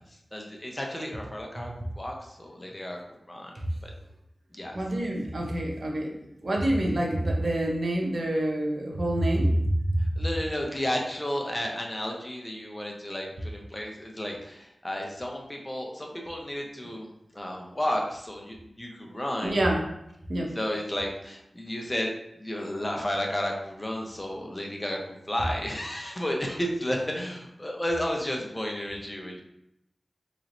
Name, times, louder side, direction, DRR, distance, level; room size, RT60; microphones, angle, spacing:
voice 1, 0.3-1.7 2.0-3.0 3.3-3.6 3.8-3.9 4.5-4.8 10.2-19.6 20.5-22.1 22.4-25.0 25.3-29.4, left 1 dB, 25° left, 1 dB, 0.8 m, -32 dB
voice 2, 4.7-6.1 6.4-10.1 19.4-19.8 20.3-20.5, right 1 dB, 65° right, 0 dB, 0.8 m, -26 dB
3.9 x 3.2 x 2.6 m, 0.81 s
cardioid pair, 45°, 0 cm